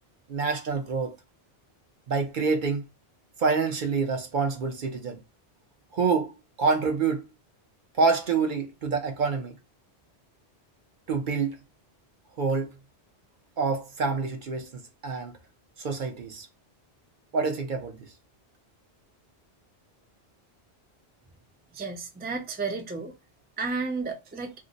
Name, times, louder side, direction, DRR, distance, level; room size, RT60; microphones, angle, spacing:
voice 1, 0.3-1.2 2.1-2.8 3.4-5.2 5.9-6.3 6.6-7.3 8.0-9.5 11.1-11.6 12.4-12.7 13.6-15.3 15.8-16.5 17.3-18.0, right 4 dB, 55° right, 0.7 m, -27 dB
voice 2, 21.7-23.1 23.6-24.5, right 4 dB, 15° right, 0.3 m, -32 dB
2.6 x 2.1 x 3.8 m
omnidirectional pair, 1.1 m